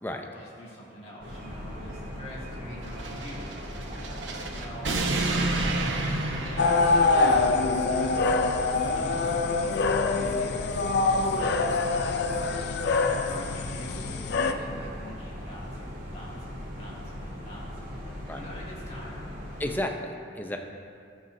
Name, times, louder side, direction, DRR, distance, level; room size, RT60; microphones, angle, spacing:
voice 1, 0.3-3.9 4.5-7.5 7.9-8.2 8.7-12.7 13.1-17.8 18.3-19.5, equal, 35° left, -7 dB, 2.1 m, -45 dB
sound 1, 1.2-19.8, equal, 50° right, 2.2 m, -39 dB
sound 2, 2.9-7.6, right 2 dB, 85° right, 0.8 m, -30 dB
sound 3, 6.6-14.5, left 3 dB, 65° left, 0.4 m, -25 dB
voice 2, 19.6-20.6, left 1 dB, 10° left, 2 dB, 0.6 m, -32 dB
16.0 x 5.7 x 2.7 m, 2.4 s
head